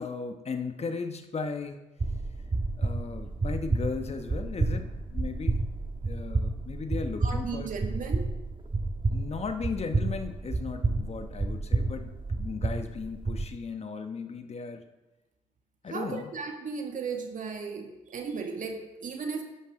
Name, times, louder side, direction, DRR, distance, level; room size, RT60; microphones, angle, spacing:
voice 1, 0.0-1.8 2.8-5.6 6.0-7.7 9.1-14.8 15.8-16.3, left 4 dB, 40° left, 7 dB, 1.2 m, -36 dB
sound 1, 2.0-13.4, right 3 dB, 30° right, 1.8 m, -30 dB
voice 2, 7.2-8.3 15.9-19.4, right 5 dB, 50° right, 3 dB, 2.1 m, -35 dB
11.0 x 11.0 x 3.8 m, 1.0 s
hypercardioid pair, 50°, 17 cm